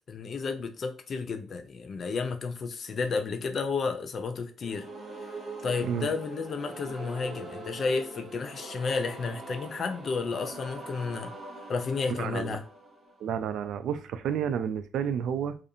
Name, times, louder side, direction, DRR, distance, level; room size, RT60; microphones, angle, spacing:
voice 1, 0.1-4.9 5.3-5.4 5.6-11.3 11.7-12.6, left 4 dB, 50° left, 0.4 m, -32 dB
sound 1, 4.6-13.5, right 2 dB, 45° right, 1.2 m, -43 dB
voice 2, 12.2-12.6 13.2-15.6, right 8 dB, 75° right, 0.3 m, -30 dB
2.5 x 2.4 x 2.6 m
cardioid pair, 90°, 0 cm